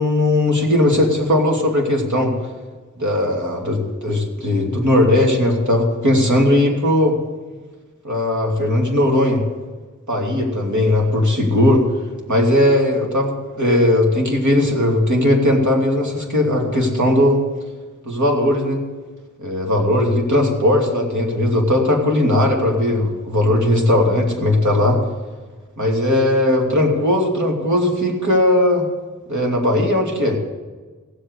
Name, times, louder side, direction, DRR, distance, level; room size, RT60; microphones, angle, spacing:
voice 1, 0.0-2.3 3.0-7.2 8.0-9.4 10.1-11.8 12.3-17.4 18.0-18.8 19.4-25.0 25.8-28.9 29.3-30.4, left 1 dB, 65° right, 0 dB, 3.0 m, -18 dB
16.5 x 8.0 x 8.2 m, 1.4 s
wide cardioid pair, 60°, 32 cm